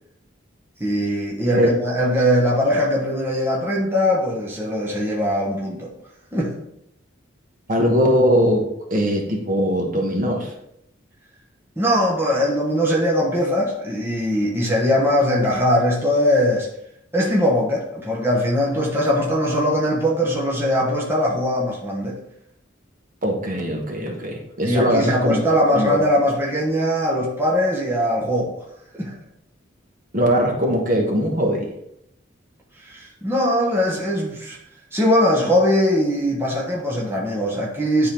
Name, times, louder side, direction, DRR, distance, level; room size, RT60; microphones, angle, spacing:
voice 1, 0.8-5.9 6.3-6.6 11.8-16.7 17.1-22.2 24.6-28.6 28.9-29.1 32.8-34.6 34.9-38.1, equal, 10° right, -4 dB, 1.1 m, -21 dB
voice 2, 7.7-10.5 23.2-25.4 25.7-26.0 30.1-31.7, equal, 45° right, 1 dB, 1.3 m, -20 dB
10.0 x 3.8 x 3.4 m, 0.77 s
head